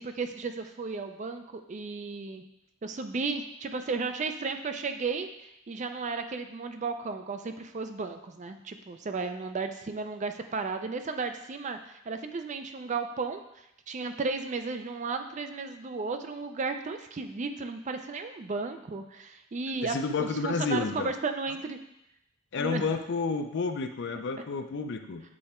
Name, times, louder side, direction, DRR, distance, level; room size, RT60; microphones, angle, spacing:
voice 1, 0.0-2.4 2.8-21.8 22.6-22.8, right 4 dB, 35° right, 7 dB, 0.4 m, -34 dB
voice 2, 19.8-21.1 22.5-25.2, left 4 dB, 55° left, 7 dB, 0.4 m, -30 dB
7.6 x 3.4 x 4.3 m, 0.83 s
head